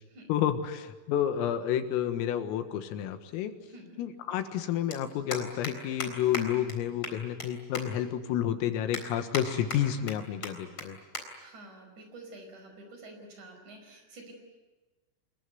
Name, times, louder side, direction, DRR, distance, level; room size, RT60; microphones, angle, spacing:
voice 1, 0.3-3.5 4.0-11.0, left 10 dB, 90° left, 8 dB, 4.2 m, -30 dB
sound 1, 2.6-2.7 4.1-4.2 4.4-4.6 4.9-5.0 5.3-5.7 6.0-6.1 6.3-6.4 6.7-6.8 7.0-7.5 7.7-7.8 8.3-8.4 8.9-9.4 9.7-10.1 10.4-10.5 10.8-10.9 11.1-11.2 11.6-11.8 12.6-12.8, left 3 dB, 25° left, 3.9 m, -35 dB
voice 2, 3.7-4.0 11.4-14.3, right 2 dB, 35° right, 4 dB, 6.1 m, -49 dB
27.0 x 22.0 x 9.5 m, 1.2 s
omnidirectional pair, 5.9 m